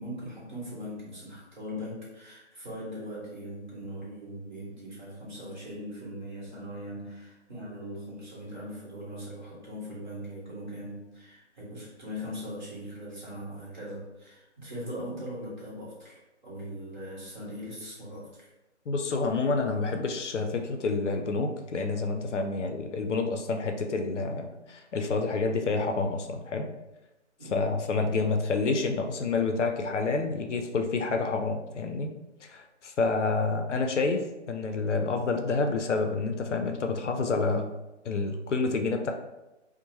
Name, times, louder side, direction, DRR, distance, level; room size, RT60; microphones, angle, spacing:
voice 1, 0.0-18.5 27.4-27.7, equal, 40° right, -6 dB, 1.1 m, -40 dB
voice 2, 18.9-26.7 27.5-32.1 32.4-37.7 38.0-39.1, left 3 dB, 75° left, 5 dB, 0.5 m, -28 dB
2.8 x 2.1 x 2.9 m, 0.99 s
figure-of-eight pair, 165°, 36 cm